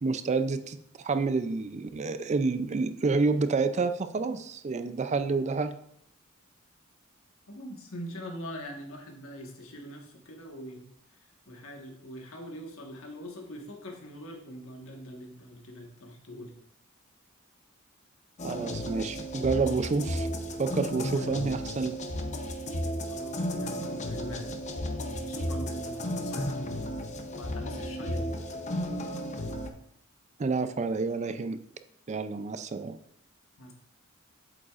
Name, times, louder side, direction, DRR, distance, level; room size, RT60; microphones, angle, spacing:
voice 1, 0.0-5.7 18.4-20.3 20.6-22.0 30.4-31.6 32.1-33.0, right 4 dB, 35° right, 11 dB, 0.4 m, -29 dB
voice 2, 7.5-10.9 11.5-16.5 21.2-21.3 23.1-24.5 25.0-26.8 27.4-28.4 33.6-33.7, equal, 85° left, 1 dB, 1.5 m, -43 dB
sound 1, 18.4-29.7, equal, 35° left, 0.7 m, -34 dB
8.0 x 7.5 x 2.5 m, 0.70 s
head